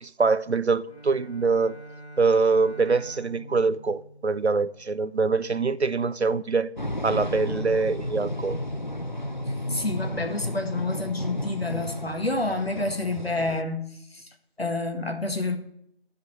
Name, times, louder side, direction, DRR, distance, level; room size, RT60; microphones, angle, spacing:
voice 1, 0.0-1.7 2.2-6.7 7.0-8.6, right 4 dB, 80° right, 0.7 m, -24 dB
Bowed string instrument, 0.8-5.2, equal, 90° left, 2.2 m, -45 dB
sound 1, 6.8-13.6, left 1 dB, 45° left, 0.5 m, -33 dB
voice 2, 9.7-14.3 14.6-15.6, left 2 dB, 65° left, 1.9 m, -29 dB
11.0 x 5.1 x 8.3 m
figure-of-eight pair, 170°, 33 cm